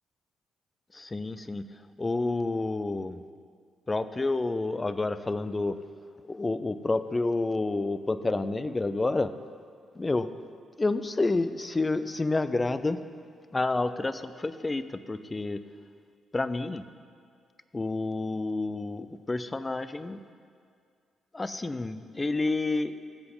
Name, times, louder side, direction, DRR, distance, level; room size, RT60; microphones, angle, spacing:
voice 1, 0.9-1.6 2.0-3.2 3.9-5.8 6.3-9.3 10.0-10.3 10.8-13.0 13.5-15.6 16.3-16.8 17.7-20.2 21.3-22.9, left 2 dB, 25° left, 12 dB, 0.5 m, -29 dB
17.0 x 7.7 x 3.9 m, 2.2 s
figure-of-eight pair, 40°, 0 cm